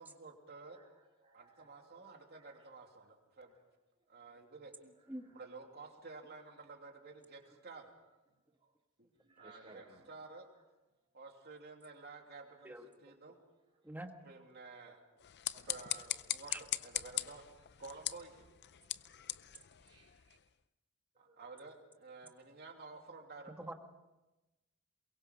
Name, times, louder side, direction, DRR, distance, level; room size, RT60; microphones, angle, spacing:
voice 1, 0.0-0.8 1.3-3.5 4.1-4.9 5.3-7.9 9.0-9.1 9.4-10.5 11.1-13.4 14.2-15.0 15.6-17.4 17.8-18.5 21.2-23.7, right 3 dB, 50° right, 2.9 m, -52 dB
voice 2, 0.6-2.0 2.3-2.7 3.5-3.7 4.0-4.2 4.9-5.4 6.5-6.6 7.4-7.6 8.0-8.7 9.2-10.1 12.5-12.7 13.3-13.5 13.8-13.9 14.2-14.5 14.9-15.0 15.5-16.0 16.4-16.6 17.5-17.6 18.7-19.4 19.8-20.4 21.1-21.4, right 2 dB, 35° right, 4.2 m, -65 dB
voice 3, 12.6-13.1 13.8-14.1 16.5-16.6 23.6-23.7, right 1 dB, 10° right, 1.7 m, -45 dB
sound 1, 15.2-20.5, left 14 dB, 55° left, 0.6 m, -41 dB
22.5 x 22.5 x 5.3 m
head